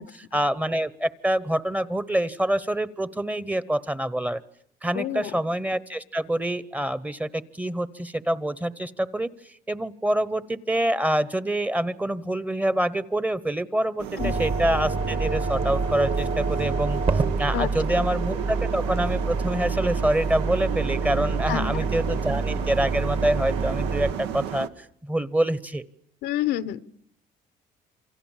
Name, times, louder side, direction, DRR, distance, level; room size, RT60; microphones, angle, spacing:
voice 1, 0.0-4.4 4.8-9.3 9.7-25.8, right 1 dB, 10° right, 17 dB, 1.0 m, -26 dB
voice 2, 4.9-5.3 14.2-14.4 17.5-17.7 21.5-21.8 22.1-22.2 26.2-26.9, left 12 dB, 80° left, 15 dB, 1.0 m, -28 dB
sound 1, 14.0-24.7, right 9 dB, 85° right, 1.1 m, -34 dB
sound 2, 14.2-24.1, right 3 dB, 35° right, 1.4 m, -27 dB
28.0 x 24.5 x 7.4 m, 0.70 s
cardioid pair, 110°, 17 cm